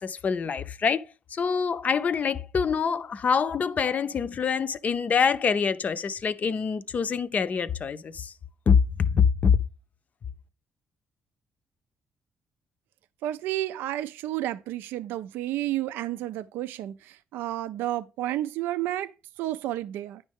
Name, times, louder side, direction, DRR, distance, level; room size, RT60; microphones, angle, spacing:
voice 1, 0.0-8.3 8.7-9.6, left 6 dB, 50° left, 0.5 m, -25 dB
voice 2, 13.2-19.1 19.4-20.2, right 14 dB, 85° right, 0.4 m, -31 dB
9.2 x 5.4 x 3.5 m
supercardioid pair, 70°, 3 cm